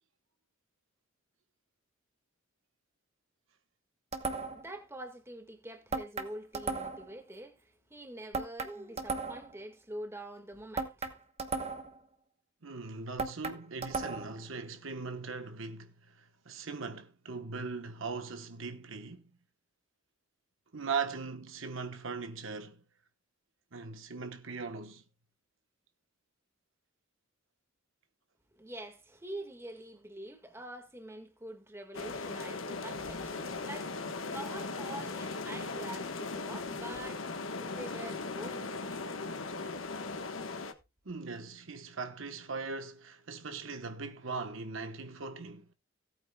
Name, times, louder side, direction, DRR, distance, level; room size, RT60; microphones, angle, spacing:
sound 1, 4.1-4.7 5.9-7.1 8.3-9.6 10.8-12.0 13.2-14.4, right 4 dB, 30° right, 1.1 m, -36 dB
voice 1, 4.5-11.2 28.5-37.3 37.6-39.0 41.4-41.5, right 1 dB, 10° right, 1.7 m, -46 dB
voice 2, 12.6-19.2 20.7-22.8 23.7-25.0 41.0-45.7, right 4 dB, 75° right, 1.1 m, -39 dB
sound 2, 31.9-40.7, left 3 dB, 75° left, 1.3 m, -38 dB
17.5 x 8.7 x 2.3 m
head